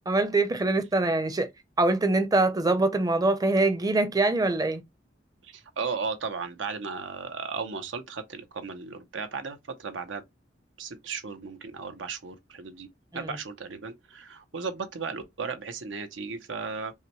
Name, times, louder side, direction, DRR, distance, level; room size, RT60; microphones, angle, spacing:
voice 1, 0.1-1.5 1.8-4.8 13.1-13.3, right 2 dB, 20° right, 0.5 m, -24 dB
voice 2, 5.4-10.2 10.8-16.9, right 5 dB, 90° right, 0.7 m, -35 dB
5.6 x 2.2 x 3.0 m
head